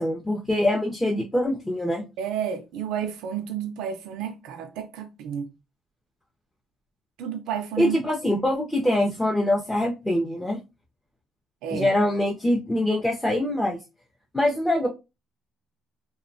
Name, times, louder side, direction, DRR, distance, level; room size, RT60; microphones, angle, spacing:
voice 1, 0.0-2.0 7.8-10.6 11.7-13.8 14.3-14.9, left 1 dB, 10° left, 0.4 m, -24 dB
voice 2, 2.2-5.5 7.2-8.0 11.6-11.9, right 8 dB, 85° right, 0.3 m, -31 dB
2.8 x 2.0 x 2.5 m
cardioid pair, 135°, 0 cm